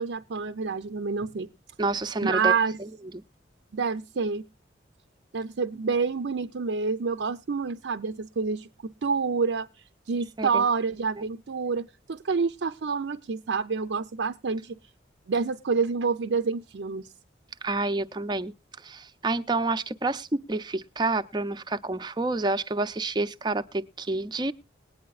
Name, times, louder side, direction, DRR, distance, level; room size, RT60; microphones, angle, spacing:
voice 1, 0.0-1.5 2.2-2.8 3.7-4.4 5.3-14.7 15.3-17.1, right 5 dB, 75° right, 0.5 m, -28 dB
voice 2, 1.8-2.5 10.4-10.6 11.2-11.3 17.6-18.5 18.8-24.5, right 2 dB, 25° right, 0.5 m, -28 dB
20.0 x 9.4 x 2.3 m
head